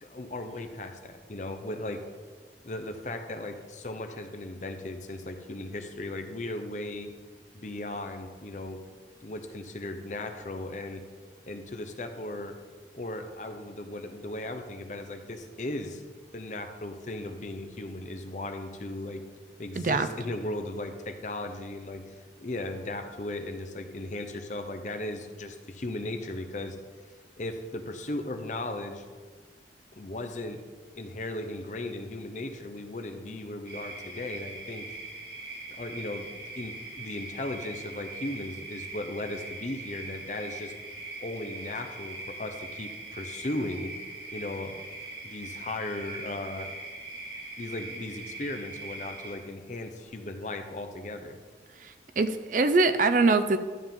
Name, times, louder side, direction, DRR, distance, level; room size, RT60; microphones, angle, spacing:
voice 1, 0.0-2.0 2.6-7.1 7.5-8.8 9.2-11.0 11.4-12.5 12.9-16.0 16.3-19.2 19.6-22.0 22.4-26.8 27.4-29.0 30.0-30.6 31.0-34.9 35.7-40.7 41.2-43.9 44.3-44.8 45.2-46.7 47.6-51.4, left 2 dB, 45° left, 6 dB, 0.8 m, -36 dB
voice 2, 19.8-20.1 51.8-53.6, right 3 dB, 45° right, 10 dB, 0.5 m, -23 dB
sound 1, 33.7-49.4, right 2 dB, 65° right, 2.4 m, -41 dB
12.5 x 7.4 x 3.7 m, 1.5 s
head